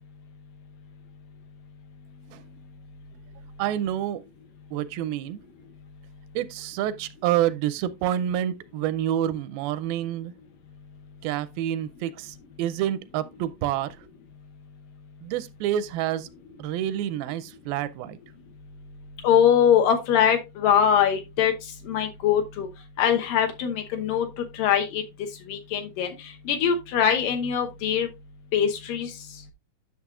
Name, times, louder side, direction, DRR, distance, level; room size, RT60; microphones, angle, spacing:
voice 1, 3.6-4.2 4.7-5.4 6.4-10.3 11.2-14.0 15.2-16.3 16.6-18.2, right 11 dB, 85° right, 2.4 m, -28 dB
voice 2, 19.2-21.5 21.9-22.7 23.0-24.3 24.5-25.0 25.5-26.1 26.5-28.1 28.5-29.1, left 8 dB, 75° left, 2.5 m, -22 dB
10.5 x 6.5 x 2.4 m
omnidirectional pair, 4.2 m